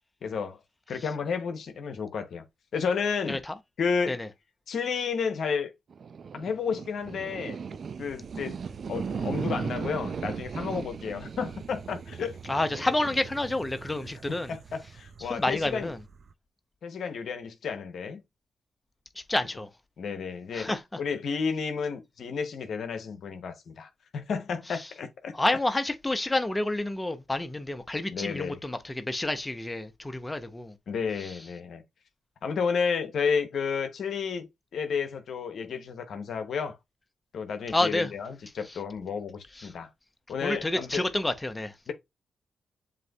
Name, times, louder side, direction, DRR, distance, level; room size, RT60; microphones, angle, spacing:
voice 1, 0.2-0.6 0.9-2.4 2.7-3.4 3.8-4.2 4.7-5.7 6.3-7.6 8.0-12.4 14.3-15.9 16.8-18.2 20.0-20.7 21.0-25.6 28.1-28.6 30.9-31.8 32.4-34.5 34.7-36.8 37.3-39.9 40.3-41.1 41.9-42.0, left 6 dB, 75° left, 0.7 m, -31 dB
sound 1, 5.9-16.3, right 6 dB, 60° right, 0.3 m, -38 dB
voice 2, 12.5-14.5 15.3-16.0 19.3-19.7 20.5-20.8 25.3-30.7 31.2-31.3 37.7-38.1 39.6-39.7 40.4-41.7, left 2 dB, 20° left, 0.7 m, -29 dB
7.5 x 2.6 x 2.3 m
supercardioid pair, 55°, 0 cm